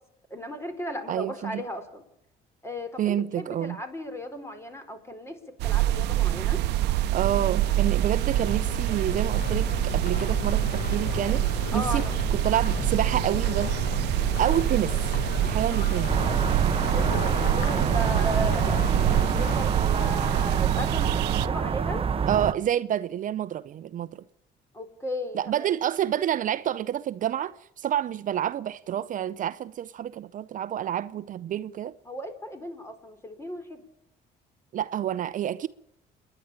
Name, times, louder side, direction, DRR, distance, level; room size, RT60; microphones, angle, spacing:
voice 1, 0.3-2.0 2.6-6.6 11.7-12.2 16.9-18.8 19.1-22.1 24.7-25.7 32.0-33.8, equal, 15° left, 4.3 m, -35 dB
voice 2, 1.1-1.6 3.0-3.8 7.1-12.0 12.3-13.7 14.4-16.2 20.1-20.2 22.3-24.1 25.3-31.9 34.7-35.7, right 11 dB, 50° right, 0.7 m, -28 dB
sound 1, 5.6-21.5, right 15 dB, 85° right, 0.8 m, -26 dB
sound 2, 6.6-20.1, left 6 dB, 55° left, 1.8 m, -35 dB
sound 3, 16.1-22.5, right 6 dB, 35° right, 0.9 m, -27 dB
28.0 x 11.0 x 8.7 m
cardioid pair, 110°, 17 cm